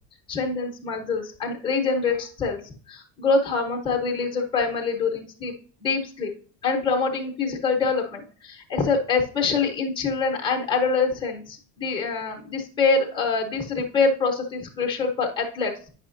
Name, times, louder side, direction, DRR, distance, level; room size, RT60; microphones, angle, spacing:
voice 1, 0.3-5.5 5.8-6.3 6.6-15.7, left 4 dB, 10° left, 1 dB, 0.9 m, -25 dB
9.0 x 5.7 x 2.5 m, 0.41 s
cardioid pair, 175°, 39 cm